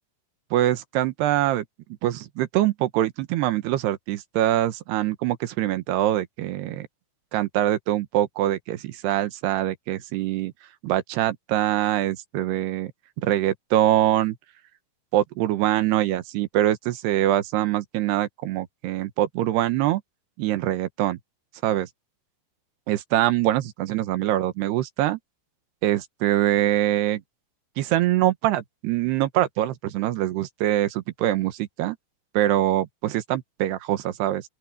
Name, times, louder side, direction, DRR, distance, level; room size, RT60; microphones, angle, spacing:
voice 1, 0.5-1.7 2.0-6.9 7.3-10.5 10.8-12.9 13.2-14.4 15.1-20.0 20.4-21.2 21.6-21.9 22.9-25.2 25.8-27.2 27.8-32.0 32.3-34.4, right 13 dB, 90° right, 3.3 m, -24 dB
open air
omnidirectional pair, 4.6 m